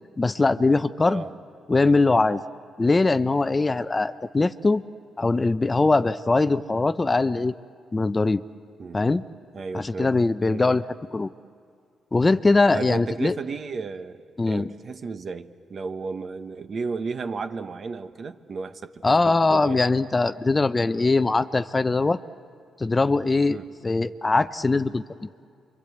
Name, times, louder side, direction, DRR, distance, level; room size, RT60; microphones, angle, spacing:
voice 1, 0.2-1.2 1.7-2.4 2.8-4.8 5.2-7.5 7.9-8.4 8.9-9.2 9.7-10.8 11.1-11.3 12.1-13.4 14.4-14.7 19.0-22.2 22.8-23.6 23.8-25.3, left 3 dB, 25° left, 12 dB, 0.6 m, -21 dB
voice 2, 9.5-10.1 10.5-10.7 12.7-19.8 23.5-23.7, right 4 dB, 50° right, 9 dB, 1.0 m, -34 dB
28.5 x 24.0 x 7.9 m, 2.3 s
cardioid pair, 90°, 0 cm